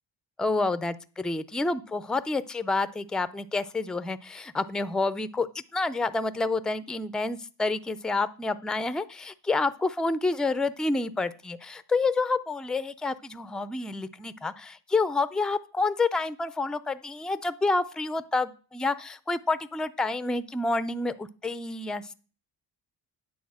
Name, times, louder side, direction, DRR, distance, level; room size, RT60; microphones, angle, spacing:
voice 1, 0.4-22.1, left 3 dB, ahead, 14 dB, 0.4 m, -28 dB
9.4 x 4.2 x 7.5 m, 0.37 s
cardioid pair, 110°, 44 cm